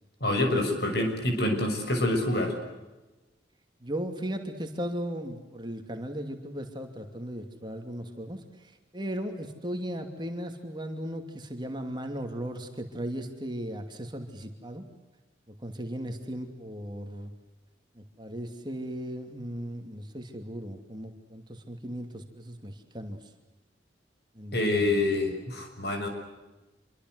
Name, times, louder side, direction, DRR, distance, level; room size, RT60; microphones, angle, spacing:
voice 1, 0.2-2.6 24.5-26.1, left 1 dB, 60° left, 5 dB, 6.8 m, -26 dB
voice 2, 3.8-8.4 8.9-14.9 15.6-17.3 18.0-23.2 24.4-25.0, equal, 25° right, 5 dB, 2.8 m, -36 dB
27.5 x 24.5 x 8.1 m, 1.1 s
head